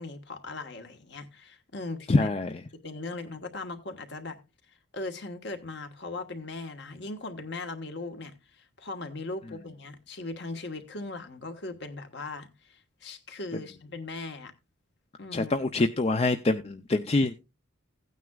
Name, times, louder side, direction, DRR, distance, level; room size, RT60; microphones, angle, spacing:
voice 1, 0.0-2.3 2.8-4.4 4.9-14.5 15.2-15.6, left 2 dB, 55° left, 1.3 m, -39 dB
voice 2, 2.1-2.5 15.3-17.3, left 2 dB, 30° left, 0.4 m, -25 dB
16.0 x 9.3 x 2.3 m
head